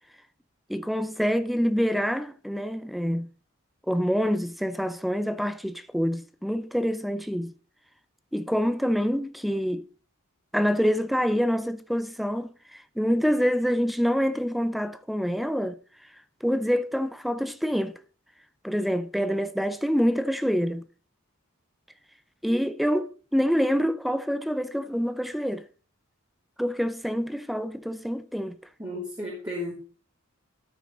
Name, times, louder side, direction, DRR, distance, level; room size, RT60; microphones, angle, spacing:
voice 1, 0.7-3.3 3.9-7.5 8.3-9.9 10.5-15.8 16.4-18.0 18.6-20.8 22.4-25.7 26.6-28.5, equal, ahead, 0.5 m, -26 dB
voice 2, 28.8-29.7, left 1 dB, 15° right, 2.9 m, -33 dB
13.0 x 6.3 x 4.0 m
head